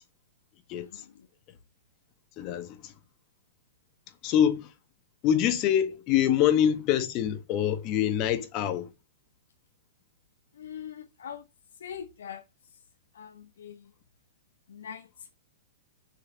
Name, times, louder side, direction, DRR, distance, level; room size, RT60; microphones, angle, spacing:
voice 1, 2.4-2.9 4.2-4.7 5.2-8.9, left 10 dB, 35° left, 1.5 m, -25 dB
voice 2, 10.6-11.4 11.8-12.4 13.1-13.8 14.7-15.1, left 8 dB, 65° left, 0.9 m, -41 dB
6.7 x 4.7 x 5.0 m
figure-of-eight pair, 105°, 0 cm